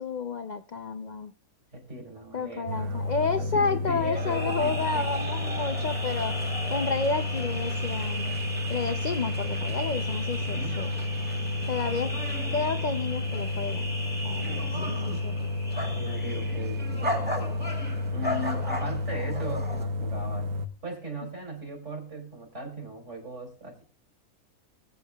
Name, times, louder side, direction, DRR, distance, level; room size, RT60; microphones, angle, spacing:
voice 1, 0.0-1.3 2.3-6.4 6.7-8.3 8.7-10.9 11.7-12.1 12.5-13.9 14.2-15.0 15.2-15.3, left 4 dB, 85° left, 7 dB, 0.4 m, -30 dB
voice 2, 1.7-5.1 10.4-10.8 14.7-15.2 15.8-20.5 20.8-23.8, right 1 dB, 55° right, 2 dB, 3.0 m, -38 dB
sound 1, 2.7-20.7, left 2 dB, 85° right, 1.3 m, -31 dB
sound 2, 4.1-19.8, equal, 5° right, 1.4 m, -36 dB
19.5 x 8.2 x 2.3 m, 0.38 s
omnidirectional pair, 1.5 m